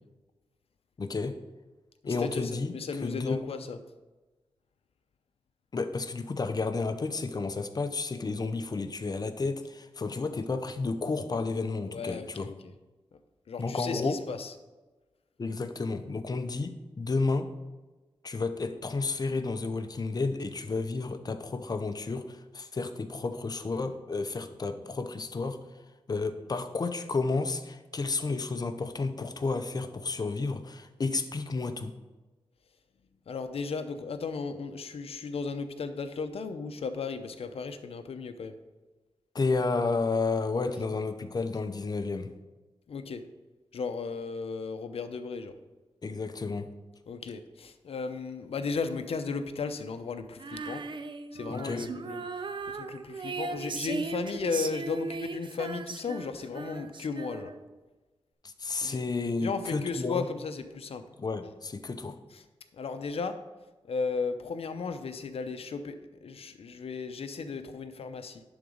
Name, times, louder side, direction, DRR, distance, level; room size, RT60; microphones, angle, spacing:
voice 1, 1.0-1.4 2.0-3.4 5.7-12.5 13.6-14.2 15.4-17.5 18.2-25.6 26.1-31.9 39.3-42.3 46.0-46.7 51.5-51.8 58.4-60.2 61.2-62.2, left 3 dB, 40° left, 9 dB, 0.6 m, -31 dB
voice 2, 2.0-3.8 11.9-12.7 13.1-13.2 13.5-14.5 33.3-38.5 42.9-43.2 43.7-45.6 47.1-50.8 51.3-57.5 58.8-59.0 59.4-61.0 62.3-62.4 62.7-63.4 63.8-68.4, left 4 dB, 75° left, 8 dB, 0.6 m, -35 dB
Female singing, 50.4-57.7, right 4 dB, 55° right, 0.5 m, -37 dB
11.0 x 4.0 x 5.0 m, 1.2 s
wide cardioid pair, 105°, 10 cm